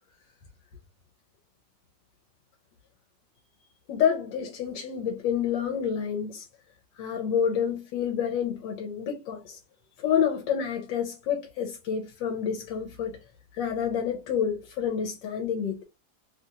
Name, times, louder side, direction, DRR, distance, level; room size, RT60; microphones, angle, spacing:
voice 1, 3.9-6.5 7.0-9.6 10.0-13.2 13.5-15.8, left 8 dB, 80° left, 1.3 m, -28 dB
3.2 x 2.7 x 2.4 m
omnidirectional pair, 2.0 m